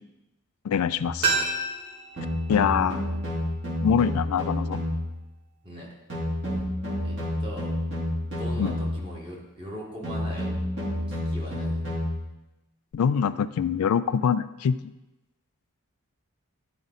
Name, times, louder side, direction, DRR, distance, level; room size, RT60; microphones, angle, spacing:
voice 1, 0.6-1.4 2.5-3.1 3.8-4.8 8.6-8.7 12.9-14.8, left 7 dB, 80° left, 14 dB, 0.3 m, -24 dB
sound 1, 0.9-1.2 2.2-5.2 6.1-9.1 10.0-12.2, left 1 dB, 50° right, 3.3 m, -29 dB
sound 2, 1.2-4.0 4.3-4.4, right 3 dB, 85° right, 2.3 m, -31 dB
voice 2, 5.6-6.0 7.0-7.8 8.3-10.5 11.1-11.8, equal, 25° right, -3 dB, 1.9 m, -40 dB
12.0 x 5.0 x 4.1 m, 1.0 s
head